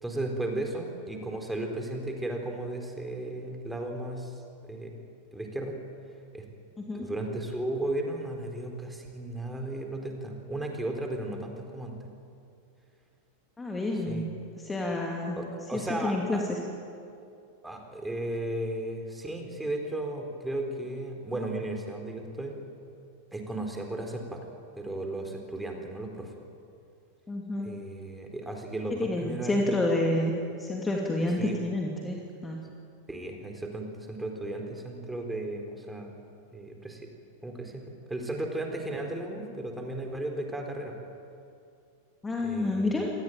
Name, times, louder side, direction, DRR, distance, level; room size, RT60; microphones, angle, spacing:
voice 1, 0.0-5.0 5.3-5.8 6.3-6.4 6.9-11.9 14.1-14.3 15.4-16.4 17.6-22.6 23.3-24.5 24.7-26.3 27.6-29.8 31.4-31.6 33.1-36.1 36.5-37.1 37.4-40.9 42.4-43.0, right 1 dB, 5° right, 3 dB, 4.2 m, -35 dB
voice 2, 6.8-7.1 13.6-14.3 14.6-15.4 15.7-16.6 27.3-27.7 28.9-30.3 30.6-32.6 42.2-43.1, left 2 dB, 10° left, 0 dB, 2.7 m, -29 dB
27.5 x 19.0 x 9.2 m, 2.5 s
figure-of-eight pair, 90°, 0 cm